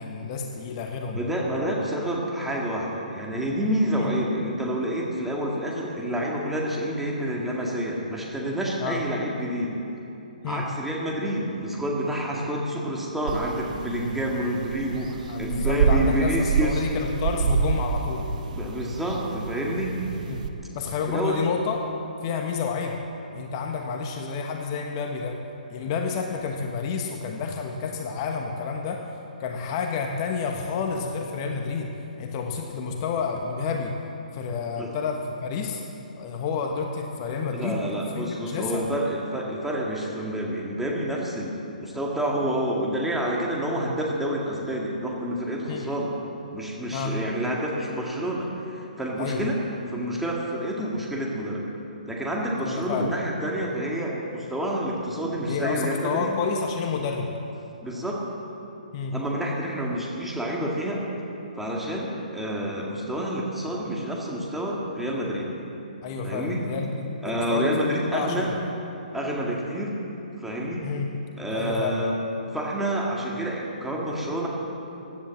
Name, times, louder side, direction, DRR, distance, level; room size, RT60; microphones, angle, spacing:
voice 1, 0.0-1.2 4.0-4.1 8.8-9.0 10.4-10.6 15.3-18.3 20.3-20.4 20.7-21.8 22.2-23.0 23.3-25.4 25.7-29.0 29.4-31.9 32.2-34.0 34.3-35.8 36.2-37.9 38.1-38.9 45.7-45.9 46.9-47.2 49.2-49.4 52.6-53.1 55.5-57.3 58.9-59.1 66.0-68.5 70.8-71.1 71.5-72.0, left 5 dB, 35° left, 3 dB, 1.2 m, -30 dB
voice 2, 1.1-9.7 10.5-16.8 18.5-20.0 21.1-21.4 34.8-35.0 37.5-46.1 46.5-49.6 49.9-51.7 52.1-56.3 57.8-58.2 59.1-61.0 61.6-65.5 66.2-66.6 67.2-68.5 69.1-69.9 70.4-70.8 71.4-72.2 72.5-74.5, equal, 5° right, -3 dB, 2.0 m, -28 dB
sound 1, 13.3-20.5, right 5 dB, 60° right, 1.1 m, -28 dB
16.0 x 10.5 x 7.3 m, 2.9 s
hypercardioid pair, 140°, 5 cm